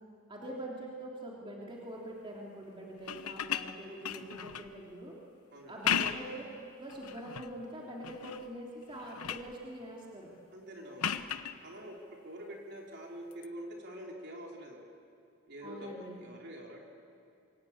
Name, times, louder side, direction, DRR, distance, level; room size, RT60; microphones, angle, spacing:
voice 1, 0.3-5.2 5.7-6.4 6.8-10.3 15.6-16.2, right 1 dB, 25° right, -3 dB, 3.3 m, -44 dB
sound 1, 3.0-4.8 5.7-6.4 6.9-7.5 8.0-8.5 8.8-9.5 11.0-11.6 13.3-13.5, left 8 dB, 85° left, 1.0 m, -35 dB
voice 2, 10.5-11.1 11.6-12.0 12.2-14.8 15.5-16.8, equal, 50° right, -1 dB, 3.9 m, -45 dB
27.0 x 23.5 x 8.7 m, 2.6 s
head